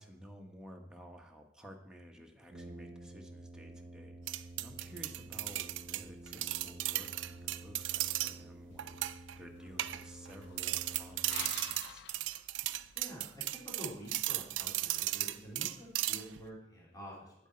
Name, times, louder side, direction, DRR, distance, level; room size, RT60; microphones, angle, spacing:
voice 1, 0.0-12.0, equal, 5° right, 1 dB, 0.9 m, -54 dB
Brass instrument, 2.5-12.0, right 1 dB, 40° right, 0.9 m, -50 dB
sound 1, 4.3-8.4 8.8-9.4 9.8-10.3 10.6-16.4, right 16 dB, 70° right, 0.3 m, -36 dB
sound 2, 8.7-13.0, left 9 dB, 65° left, 0.4 m, -51 dB
voice 2, 13.0-17.3, equal, 20° left, -5 dB, 2.4 m, -48 dB
8.6 x 7.6 x 4.3 m, 0.76 s
head